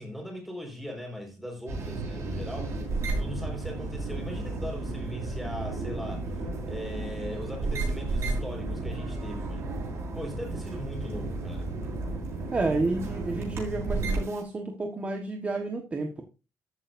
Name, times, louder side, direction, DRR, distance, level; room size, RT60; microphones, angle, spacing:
voice 1, 0.0-6.3 6.7-9.7 10.1-11.7, equal, ahead, 4.9 m, -39 dB
sound 1, 1.7-14.4, right 3 dB, 55° right, 7.0 m, -33 dB
voice 2, 12.5-16.2, right 2 dB, 25° right, 1.3 m, -30 dB
13.5 x 9.0 x 2.6 m
cardioid pair, 145°, 6 cm